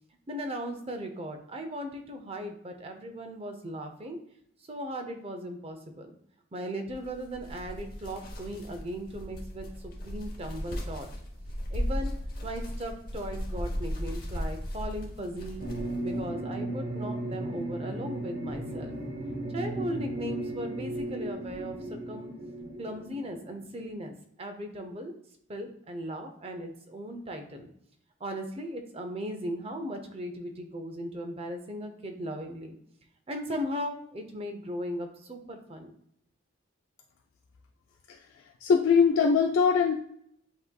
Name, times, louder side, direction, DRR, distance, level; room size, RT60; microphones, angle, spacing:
voice 1, 0.3-4.2 4.7-6.1 6.5-11.1 11.7-12.1 12.4-15.6 16.0-18.9 19.5-22.3 22.8-25.1 25.5-27.7 28.2-32.7 33.3-35.9, equal, 30° right, 6 dB, 0.5 m, -37 dB
sound 1, 6.9-16.2, equal, 45° left, 0.9 m, -36 dB
sound 2, 15.6-23.8, right 1 dB, 45° right, 0.8 m, -36 dB
voice 2, 38.6-40.0, left 6 dB, 70° left, 1 dB, 0.3 m, -22 dB
7.9 x 2.7 x 2.2 m, 0.73 s
head